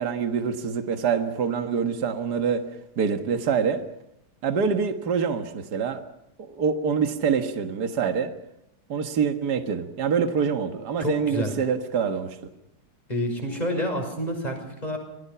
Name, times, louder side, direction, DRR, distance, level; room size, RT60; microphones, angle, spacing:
voice 1, 0.0-2.6 3.0-3.8 4.4-6.0 6.4-8.3 8.9-12.4, right 6 dB, 50° right, 7 dB, 2.1 m, -25 dB
voice 2, 11.0-11.5 13.1-15.0, left 1 dB, 20° left, 3 dB, 6.2 m, -28 dB
27.5 x 21.0 x 5.8 m, 0.80 s
omnidirectional pair, 2.3 m